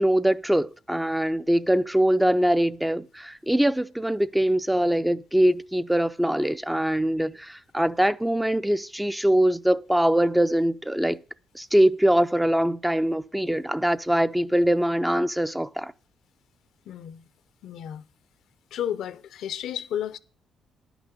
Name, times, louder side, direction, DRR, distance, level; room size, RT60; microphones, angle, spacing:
voice 1, 0.0-11.2 11.5-15.9, right 1 dB, 5° right, 0.4 m, -23 dB
voice 2, 16.9-17.3 17.6-18.1 18.7-20.2, left 10 dB, 75° left, 0.6 m, -32 dB
10.5 x 6.0 x 6.6 m
cardioid pair, 90°, 0 cm